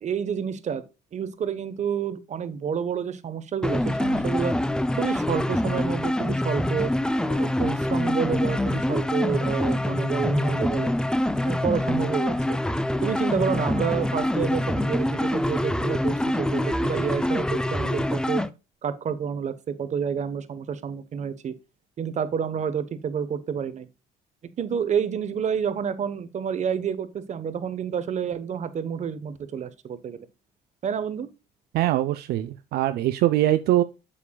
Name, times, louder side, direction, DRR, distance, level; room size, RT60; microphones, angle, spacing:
voice 1, 0.0-0.8 1.1-4.6 5.0-6.9 7.3-10.9 11.4-12.3 13.0-18.4 18.8-21.5 22.0-23.9 24.6-30.3 30.8-31.3, right 7 dB, 45° right, 1.1 m, -29 dB
sound 1, 3.6-18.5, left 1 dB, 5° left, 0.5 m, -25 dB
voice 2, 31.7-33.8, right 14 dB, 70° right, 0.5 m, -22 dB
8.6 x 7.1 x 2.3 m
cardioid pair, 110°, 17 cm